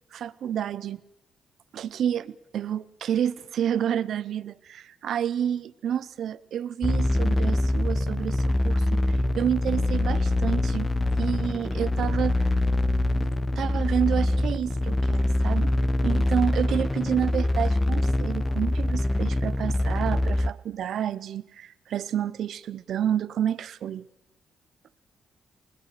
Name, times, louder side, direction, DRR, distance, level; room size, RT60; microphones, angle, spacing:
voice 1, 0.1-1.0 1.7-10.9 11.2-12.4 13.6-15.7 16.0-24.1, right 9 dB, 70° right, 17 dB, 0.7 m, -29 dB
sound 1, 6.8-20.5, left 1 dB, 20° left, 0.8 m, -24 dB
21.5 x 20.5 x 6.8 m, 0.86 s
cardioid pair, 75°, 0 cm